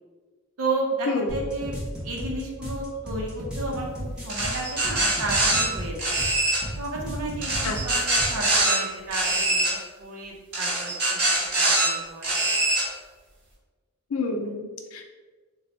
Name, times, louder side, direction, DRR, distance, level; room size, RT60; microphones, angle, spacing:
voice 1, 0.6-1.8 2.0-6.1 6.8-9.6 10.0-11.2 11.6-12.3, right 2 dB, 75° right, -1 dB, 0.8 m, -32 dB
sound 1, 1.3-8.4, equal, 5° right, 0.8 m, -34 dB
sound 2, 4.3-5.6 6.0-6.6 7.4-8.8 9.1-9.7 10.5-11.9 12.2-12.8, right 2 dB, 50° right, 1.3 m, -23 dB
voice 2, 14.1-15.0, left 3 dB, 75° left, 4 dB, 0.4 m, -28 dB
2.8 x 2.2 x 4.1 m, 1.4 s
head